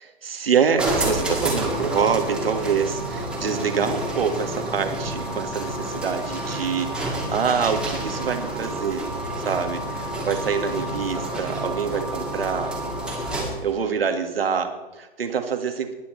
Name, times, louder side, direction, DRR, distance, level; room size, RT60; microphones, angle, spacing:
voice 1, 0.2-9.1 9.5-12.8 13.6-15.9, right 6 dB, 70° right, 6 dB, 2.0 m, -25 dB
sound 1, 0.8-13.7, right 1 dB, 5° right, 2.5 m, -29 dB
20.5 x 9.6 x 3.3 m, 1.2 s
figure-of-eight pair, 125°, 30 cm